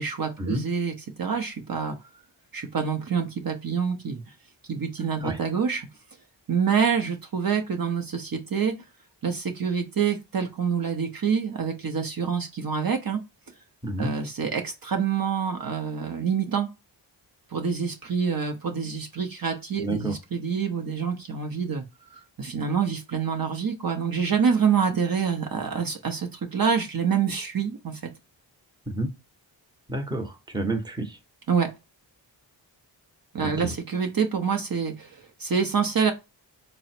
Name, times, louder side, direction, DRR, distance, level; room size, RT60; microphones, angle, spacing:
voice 1, 0.0-2.0 2.5-4.2 4.7-5.9 6.5-8.7 9.2-13.2 14.0-16.7 17.5-21.8 22.1-28.0 31.5-31.7 33.3-36.1, right 6 dB, 50° right, 0.8 m, -26 dB
voice 2, 19.8-20.1 28.9-29.1 29.9-31.2 33.4-33.7, right 2 dB, 10° right, 0.9 m, -29 dB
3.8 x 2.1 x 4.2 m
cardioid pair, 65°, 46 cm